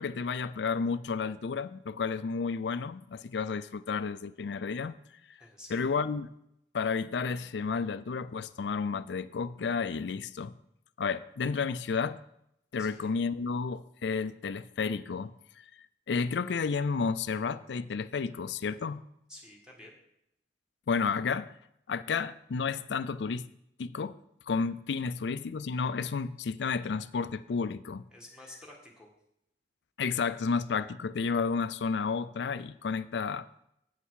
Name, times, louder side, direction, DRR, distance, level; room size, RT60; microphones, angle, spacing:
voice 1, 0.0-4.9 5.7-6.3 6.7-10.5 11.0-12.2 12.7-15.3 16.1-19.0 20.9-21.5 21.9-23.5 23.8-24.2 24.5-28.0 30.0-33.5, left 5 dB, 80° left, 14 dB, 0.4 m, -31 dB
voice 2, 5.4-5.8 12.8-13.1 19.3-19.9 28.1-29.1, left 1 dB, 5° right, -2 dB, 1.8 m, -50 dB
8.3 x 5.8 x 6.3 m, 0.78 s
head